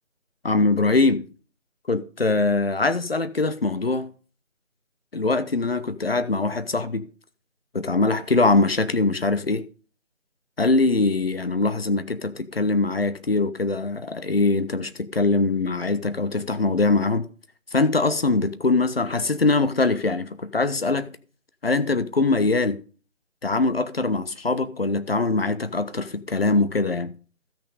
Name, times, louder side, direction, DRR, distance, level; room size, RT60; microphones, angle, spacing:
voice 1, 0.4-1.3 1.9-4.1 5.1-7.1 7.7-9.6 10.6-17.3 17.7-21.1 21.6-22.8 23.4-27.1, left 3 dB, 50° left, 0.9 m, -22 dB
13.0 x 6.2 x 4.8 m
figure-of-eight pair, 165°, 39 cm